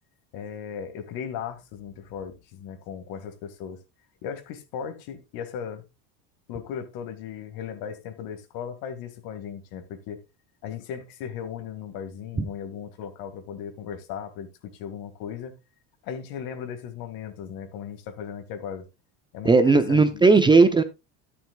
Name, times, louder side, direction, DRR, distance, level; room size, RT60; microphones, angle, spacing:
voice 1, 0.3-3.8 4.2-5.8 6.5-10.2 10.6-15.5 16.0-18.9 19.3-20.2, left 8 dB, 60° left, 2.1 m, -37 dB
voice 2, 19.4-20.8, right 4 dB, 10° right, 0.6 m, -17 dB
12.5 x 10.5 x 2.3 m
cardioid pair, 145°, 40 cm